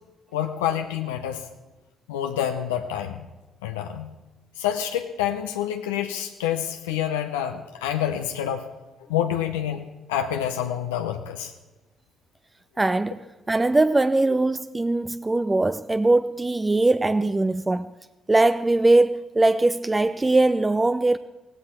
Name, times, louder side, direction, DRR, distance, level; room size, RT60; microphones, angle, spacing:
voice 1, 0.3-1.5 2.1-3.3 3.6-4.1 4.6-8.7 9.1-9.8 10.1-11.5, left 10 dB, 85° left, 0.7 m, -27 dB
voice 2, 12.8-13.2 13.5-17.9 18.3-21.2, right 2 dB, 20° right, 0.5 m, -21 dB
17.0 x 15.5 x 4.5 m
hypercardioid pair, 50°, 0 cm